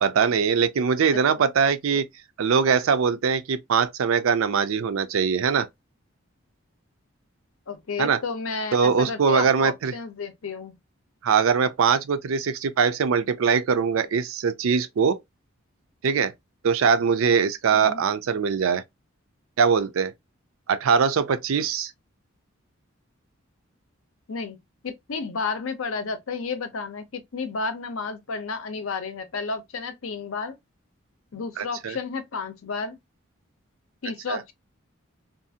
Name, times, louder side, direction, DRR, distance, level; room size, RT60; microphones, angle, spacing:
voice 1, 0.0-2.0 2.4-5.7 8.0-8.2 8.7-9.9 11.2-15.2 16.0-16.3 16.6-18.8 19.6-20.1 20.7-21.9 31.6-32.0 34.3-34.4, right 6 dB, 80° right, 0.4 m, -22 dB
voice 2, 7.7-10.8 17.7-18.0 24.3-24.6 24.8-30.6 31.3-33.0 34.0-34.5, left 4 dB, 75° left, 0.6 m, -32 dB
2.6 x 2.4 x 2.7 m
head